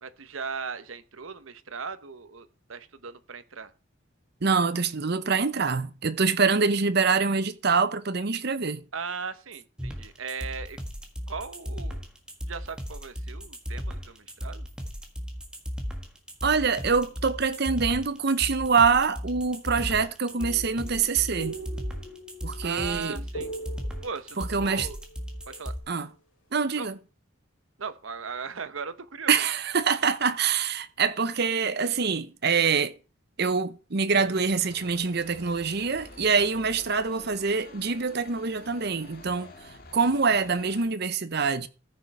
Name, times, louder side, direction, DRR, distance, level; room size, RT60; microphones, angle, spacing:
voice 1, 0.0-3.7 8.9-10.8 11.3-12.1 12.5-14.7 22.6-23.5 24.0-25.0 25.5-25.7 26.8-26.9 27.8-29.4, right 5 dB, 80° right, 1.0 m, -38 dB
voice 2, 4.4-8.8 16.4-21.6 22.4-23.2 24.4-24.9 25.9-26.1 26.5-26.9 29.3-32.9 33.4-39.5 39.9-41.7, right 5 dB, 50° right, 0.8 m, -25 dB
sound 1, 9.8-25.8, equal, 5° right, 1.6 m, -36 dB
sound 2, 20.3-25.9, right 2 dB, 75° left, 4.4 m, -42 dB
sound 3, 34.1-40.9, left 2 dB, 45° left, 2.0 m, -48 dB
14.0 x 6.5 x 4.7 m
head